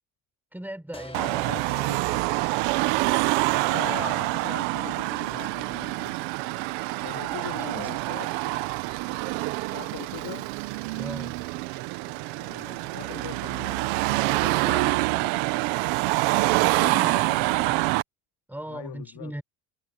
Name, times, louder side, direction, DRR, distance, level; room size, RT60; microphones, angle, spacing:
voice 1, 0.5-1.7 7.3-7.9 10.9-11.4 16.8-17.3 18.5-19.4, right 1 dB, 5° right, 5.9 m, -38 dB
sound 1, 0.9-6.4, left 2 dB, 10° left, 2.3 m, -48 dB
Car passing by / Traffic noise roadway noise / Engine, 1.1-18.0, right 22 dB, 80° right, 1.4 m, -26 dB
voice 2, 1.5-2.1 3.7-6.2 7.0-8.6 9.7-10.5 11.9-15.4 16.6-17.9 18.7-19.3, left 14 dB, 60° left, 3.6 m, -41 dB
supercardioid pair, 95°, 44 cm